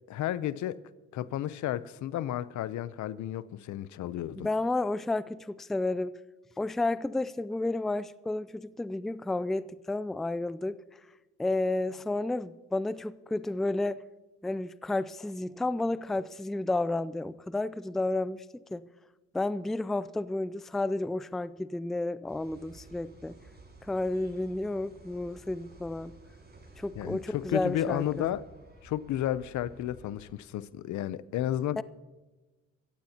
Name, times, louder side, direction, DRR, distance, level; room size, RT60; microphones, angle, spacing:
voice 1, 0.1-0.8 1.1-4.5 27.0-28.4 28.8-31.8, left 12 dB, 75° left, 0.7 m, -32 dB
voice 2, 4.4-6.1 6.6-10.8 11.4-14.0 14.4-18.8 19.3-23.4 23.8-26.2 26.8-28.4 31.8-31.9, left 2 dB, ahead, 0.3 m, -31 dB
sound 1, 22.3-30.3, right 2 dB, 35° right, 5.6 m, -53 dB
22.5 x 14.5 x 2.9 m
cardioid pair, 80°, 30 cm